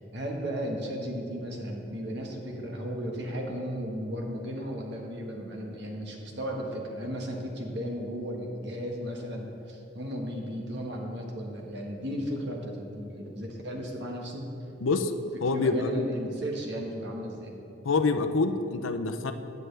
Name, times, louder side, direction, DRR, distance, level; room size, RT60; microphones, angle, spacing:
voice 1, 0.0-14.5 15.5-17.6, equal, 60° right, 0 dB, 1.6 m, -35 dB
voice 2, 14.8-15.1 15.4-15.9 17.8-19.3, left 3 dB, 85° left, 9 dB, 0.6 m, -26 dB
15.5 x 9.3 x 3.4 m, 2.9 s
head